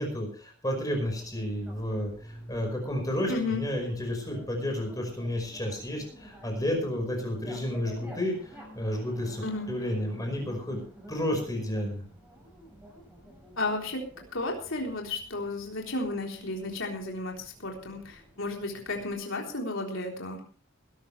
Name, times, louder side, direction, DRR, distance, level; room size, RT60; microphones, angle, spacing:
voice 1, 0.0-8.3 8.8-10.8 11.1-12.0, left 1 dB, 15° left, 3 dB, 5.3 m, -31 dB
Bicycle, 0.9-19.1, equal, 5° right, 6.6 m, -49 dB
voice 2, 3.3-3.6 9.4-9.7 13.6-14.1 14.3-20.4, left 2 dB, 65° left, 0 dB, 3.9 m, -33 dB
20.0 x 13.0 x 3.4 m, 0.40 s
head